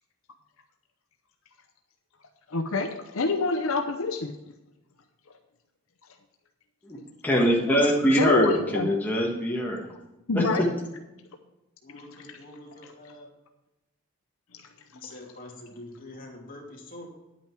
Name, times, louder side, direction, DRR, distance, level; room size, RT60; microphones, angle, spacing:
voice 1, 2.5-4.4 8.2-8.9 10.3-10.6 11.9-12.0 12.3-12.4 15.1-15.2, left 3 dB, 70° left, 6 dB, 0.8 m, -27 dB
voice 2, 6.8-10.0 10.3-10.7, equal, 10° left, -3 dB, 1.5 m, -23 dB
voice 3, 11.8-13.3 14.9-17.1, left 2 dB, 40° left, -2 dB, 2.7 m, -45 dB
10.5 x 8.8 x 4.6 m, 0.98 s
head